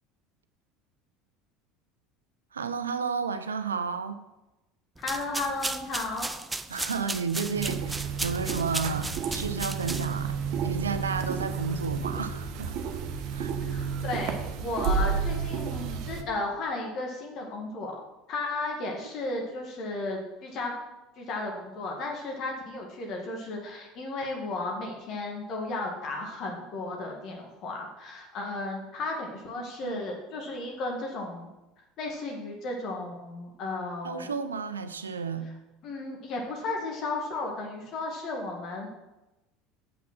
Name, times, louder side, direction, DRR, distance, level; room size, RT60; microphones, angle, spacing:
voice 1, 2.5-4.2 6.7-12.8 13.3-13.5 29.6-30.1 34.0-35.5, right 5 dB, 85° right, 11 dB, 0.6 m, -32 dB
voice 2, 5.0-6.3 13.6-17.9 18.3-20.7 21.2-31.5 32.0-34.3 35.8-38.9, left 2 dB, 50° left, 0 dB, 1.8 m, -34 dB
sound 1, 5.0-10.3, right 2 dB, 10° right, 0.5 m, -35 dB
sound 2, 7.5-16.2, right 6 dB, 55° right, 1.0 m, -31 dB
7.4 x 5.9 x 6.0 m, 1.0 s
hypercardioid pair, 70°, 0 cm